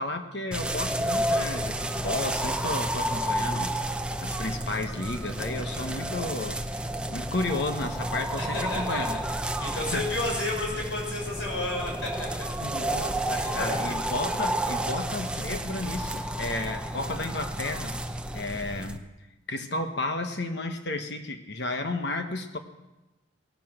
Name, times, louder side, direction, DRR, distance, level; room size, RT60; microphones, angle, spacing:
voice 1, 0.0-3.7 4.2-6.6 7.1-9.2 9.7-10.1 12.6-17.9 18.3-19.1 19.5-22.6, left 2 dB, 60° left, 6 dB, 1.2 m, -32 dB
sound 1, 0.5-19.0, right 1 dB, 5° right, 0.6 m, -31 dB
voice 2, 8.4-9.0 9.5-12.5 13.3-13.9, left 2 dB, 80° left, -1 dB, 6.0 m, -32 dB
18.0 x 11.5 x 6.0 m, 1.0 s
head